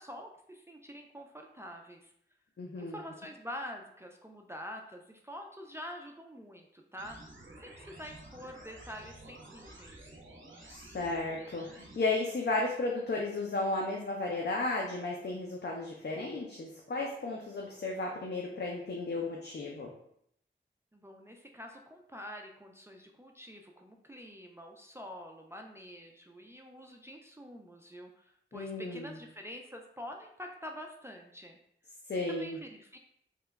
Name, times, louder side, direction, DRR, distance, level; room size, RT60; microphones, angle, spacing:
voice 1, 0.0-2.1 2.8-7.2 7.6-10.0 20.9-31.6 32.3-33.0, equal, 15° right, 2 dB, 0.3 m, -46 dB
voice 2, 2.6-3.0 10.7-19.9 28.5-29.2 32.1-32.6, left 2 dB, 60° left, -1 dB, 0.5 m, -34 dB
sound 1, 7.0-12.0, right 1 dB, 75° right, 0.6 m, -51 dB
2.9 x 2.2 x 3.4 m, 0.72 s
wide cardioid pair, 60°, 20 cm